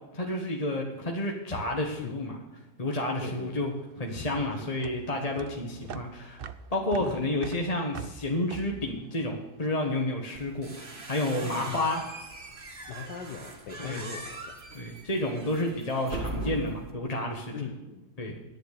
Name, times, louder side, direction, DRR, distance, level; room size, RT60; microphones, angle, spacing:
voice 1, 0.1-2.4 2.8-3.7 4.0-6.4 6.7-12.0 12.4-12.6 13.8-14.0 14.7-17.7 18.2-18.3, left 1 dB, 25° left, 1 dB, 1.3 m, -30 dB
voice 2, 3.2-3.7 4.3-4.7 7.0-7.2 11.4-11.8 12.9-14.6 15.4-15.5 17.5-18.4, left 6 dB, 80° left, 4 dB, 1.6 m, -40 dB
sound 1, 3.5-10.0, right 7 dB, 70° right, 0.5 m, -44 dB
sound 2, 10.3-16.9, right 1 dB, 30° right, 1.9 m, -40 dB
11.0 x 9.5 x 6.7 m, 1.1 s
omnidirectional pair, 1.8 m